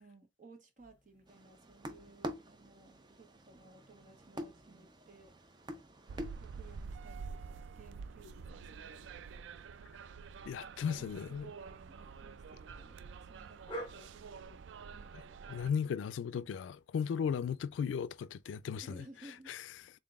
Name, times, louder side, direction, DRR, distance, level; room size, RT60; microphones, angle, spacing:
voice 1, 0.0-5.3 6.3-9.4 10.6-15.1 18.8-19.5, right 2 dB, 45° right, 1.0 m, -59 dB
sound 1, 0.8-18.7, right 1 dB, 25° left, 1.1 m, -56 dB
sound 2, 1.3-6.9, equal, 25° right, 0.5 m, -47 dB
sound 3, 6.1-15.7, right 5 dB, 85° right, 0.3 m, -48 dB
voice 2, 10.5-11.5 15.5-19.0 19.5-19.6, left 7 dB, 85° left, 0.3 m, -36 dB
3.9 x 3.7 x 2.3 m
head